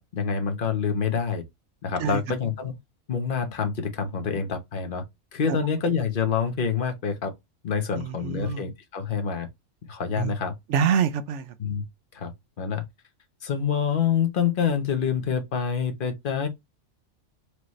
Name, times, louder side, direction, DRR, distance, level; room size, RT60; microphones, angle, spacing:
voice 1, 0.0-1.4 1.8-2.8 3.1-5.0 5.3-7.3 7.6-9.5 9.9-10.5 11.6-11.8 12.1-12.3 12.6-12.8 13.4-16.5, left 6 dB, 45° left, 1.0 m, -26 dB
voice 2, 8.0-8.7 10.2-10.3 10.7-11.5, right 7 dB, 70° right, 0.9 m, -26 dB
4.8 x 2.9 x 3.1 m
omnidirectional pair, 1.4 m